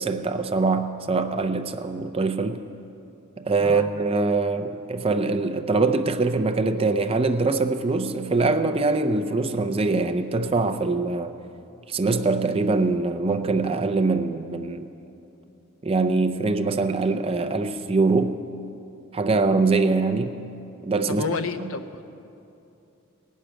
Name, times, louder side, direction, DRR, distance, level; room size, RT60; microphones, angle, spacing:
voice 1, 0.0-2.6 3.4-11.4 11.9-14.9 15.8-18.4 19.1-20.4 20.8-21.2, right 3 dB, 25° right, 8 dB, 0.5 m, -23 dB
voice 2, 21.1-22.0, left 4 dB, 70° left, 8 dB, 0.6 m, -30 dB
18.0 x 6.4 x 8.9 m, 2.8 s
head